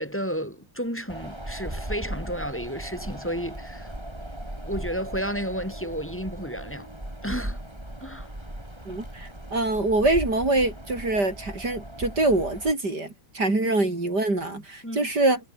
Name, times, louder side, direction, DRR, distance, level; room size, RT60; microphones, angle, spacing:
voice 1, 0.0-3.9 4.6-6.9 7.2-7.6 8.0-8.3 14.8-15.1, equal, 5° left, 7.3 m, -32 dB
Wind, 1.1-12.7, right 1 dB, 15° right, 5.1 m, -37 dB
voice 2, 8.9-15.4, right 2 dB, 60° right, 6.5 m, -24 dB
omnidirectional pair, 2.0 m